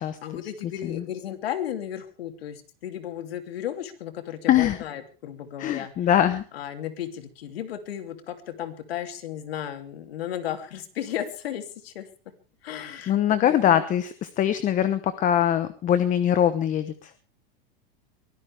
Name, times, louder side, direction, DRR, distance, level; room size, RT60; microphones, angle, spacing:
voice 1, 0.2-5.9 6.5-12.1 12.6-13.1 13.4-13.8, left 10 dB, 85° left, 8 dB, 3.0 m, -34 dB
voice 2, 4.5-4.8 5.6-6.4 13.1-17.1, left 10 dB, 25° left, 13 dB, 1.0 m, -22 dB
23.5 x 15.5 x 3.5 m, 0.36 s
supercardioid pair, 140°, 29 cm